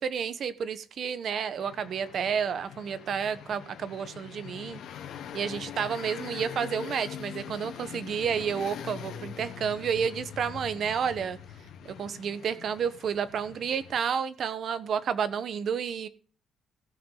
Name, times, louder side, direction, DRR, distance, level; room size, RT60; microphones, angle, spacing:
voice 1, 0.0-4.8 5.3-11.4 11.8-16.1, right 7 dB, 60° right, 13 dB, 1.0 m, -30 dB
sound 1, 1.6-14.0, left 9 dB, 85° left, 1.5 m, -43 dB
17.5 x 6.3 x 3.9 m, 0.38 s
cardioid pair, 125°, 0 cm